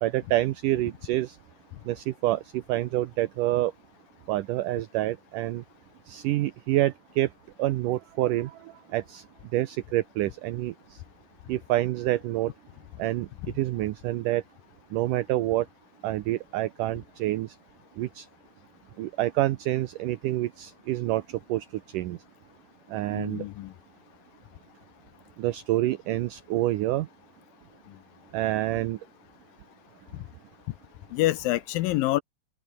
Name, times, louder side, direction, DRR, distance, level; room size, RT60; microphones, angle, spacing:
voice 1, 0.0-1.4 1.9-3.7 4.3-5.6 6.1-7.3 7.6-8.5 8.9-9.2 9.5-10.7 11.5-12.5 13.0-13.3 13.6-14.4 14.9-15.7 16.0-17.6 18.0-18.3 19.0-21.7 21.9-22.2 22.9-23.4 25.4-27.1 28.3-29.0, right 15 dB, 70° right, 2.2 m, -27 dB
voice 2, 23.1-23.7 31.1-32.2, left 16 dB, 75° left, 2.3 m, -26 dB
open air
omnidirectional pair, 4.4 m